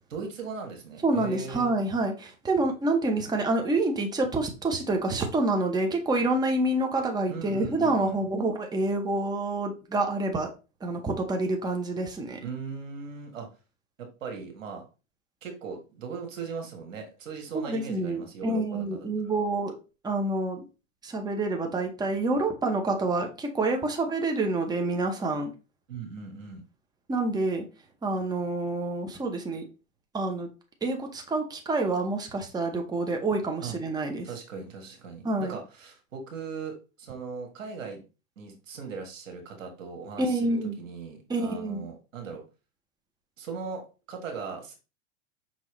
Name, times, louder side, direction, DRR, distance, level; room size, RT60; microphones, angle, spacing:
voice 1, 0.1-1.7 7.3-8.2 12.4-13.5 14.0-14.8 15.4-19.0 19.2-19.3 25.9-26.6 33.6-33.7 34.2-38.0 38.4-42.4 43.4-44.7, right 5 dB, 90° right, 3 dB, 1.5 m, -39 dB
voice 2, 1.0-10.5 10.8-12.4 17.5-19.7 20.0-20.7 21.0-25.5 27.1-27.7 28.0-29.7 30.1-30.5 30.8-34.3 35.2-35.6 40.2-40.8 41.3-41.9, right 2 dB, 10° right, 3 dB, 0.8 m, -27 dB
5.4 x 3.0 x 3.0 m, 0.32 s
hypercardioid pair, 105°, 38 cm